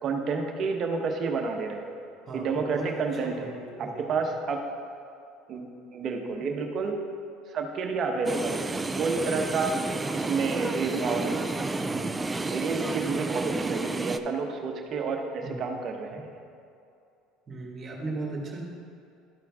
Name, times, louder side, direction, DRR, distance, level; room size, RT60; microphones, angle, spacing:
voice 1, 0.0-1.9 2.3-4.6 5.5-7.0 7.5-11.5 12.5-16.3, right 4 dB, 50° right, 3 dB, 1.0 m, -30 dB
voice 2, 2.2-4.1 9.3-9.4 11.8-12.1 15.4-15.7 16.1-16.2 17.5-18.6, right 2 dB, 35° right, -1 dB, 2.0 m, -38 dB
sound 1, 8.3-14.2, right 3 dB, 15° right, 0.4 m, -31 dB
12.5 x 4.5 x 3.6 m, 2.5 s
supercardioid pair, 90°, 0 cm